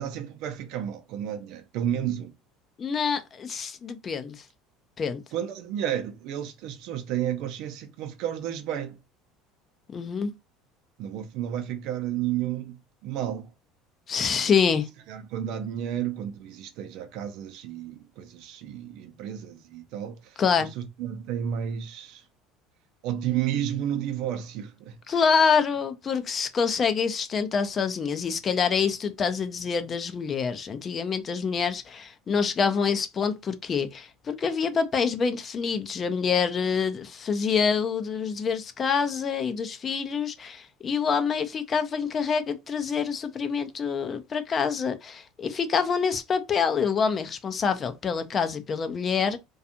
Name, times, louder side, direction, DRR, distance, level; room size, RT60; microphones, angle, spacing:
voice 1, 0.0-2.3 5.3-9.0 11.0-13.5 14.4-14.5 15.1-22.2 23.0-25.2, right 10 dB, 65° right, 0.5 m, -32 dB
voice 2, 2.8-4.4 5.0-5.2 9.9-10.3 14.1-14.9 20.4-20.7 25.1-49.4, left 6 dB, 35° left, 0.5 m, -26 dB
2.4 x 2.3 x 2.7 m
hypercardioid pair, 80°, 0 cm